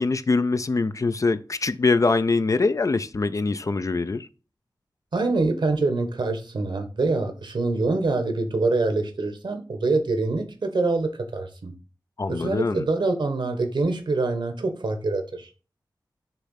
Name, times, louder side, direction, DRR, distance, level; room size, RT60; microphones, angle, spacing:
voice 1, 0.0-4.3 12.2-12.9, left 3 dB, 45° left, 0.4 m, -23 dB
voice 2, 5.1-11.7 12.3-15.5, right 3 dB, 75° right, 1.3 m, -25 dB
6.7 x 3.1 x 5.7 m
wide cardioid pair, 90°, 8 cm